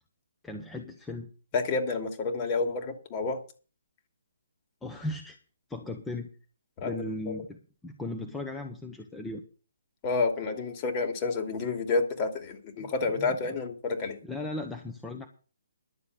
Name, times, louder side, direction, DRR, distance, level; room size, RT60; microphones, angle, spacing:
voice 1, 0.4-1.3 4.8-5.4 5.7-6.3 6.8-9.4 12.8-13.4 14.2-15.3, left 2 dB, 5° left, 3 dB, 1.3 m, -37 dB
voice 2, 1.5-3.4 6.8-7.3 10.0-14.2, left 3 dB, 30° left, 5 dB, 2.7 m, -29 dB
11.5 x 7.1 x 8.3 m, 0.36 s
figure-of-eight pair, 140°, 0 cm